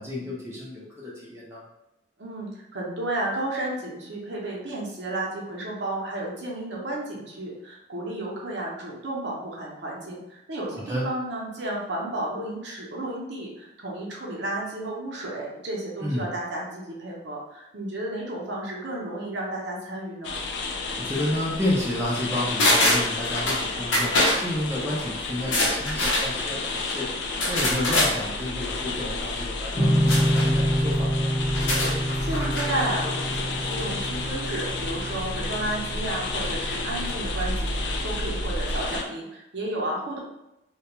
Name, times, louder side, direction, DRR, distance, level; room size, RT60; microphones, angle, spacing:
voice 1, 0.0-1.6 10.7-11.1 16.0-16.3 21.0-27.1 27.5-31.3, left 1 dB, 15° right, -5 dB, 0.4 m, -31 dB
voice 2, 2.2-20.4 32.2-40.2, right 1 dB, 65° right, -3 dB, 0.7 m, -32 dB
sound 1, 20.2-39.0, left 2 dB, 65° left, 0.3 m, -31 dB
sound 2, 22.6-23.6 23.9-24.4 25.4-26.3 27.4-28.1 30.1-30.5 31.5-32.7 33.0-33.1, left 1 dB, 85° left, 0.7 m, -23 dB
sound 3, 29.7-37.0, equal, 20° left, 0.7 m, -27 dB
2.3 x 2.1 x 2.9 m, 0.91 s
head